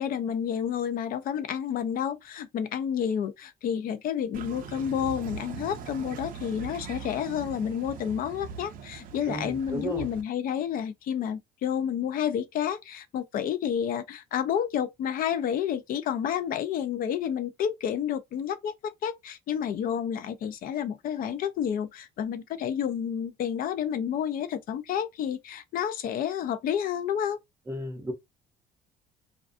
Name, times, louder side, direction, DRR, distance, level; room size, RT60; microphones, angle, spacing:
voice 1, 0.0-27.4, left 9 dB, 55° left, 0.4 m, -30 dB
sound 1, 4.3-10.2, right 6 dB, 55° right, 0.5 m, -41 dB
voice 2, 9.3-10.1 27.7-28.1, right 1 dB, 15° right, 0.7 m, -34 dB
2.4 x 2.3 x 2.4 m
cardioid pair, 110°, 17 cm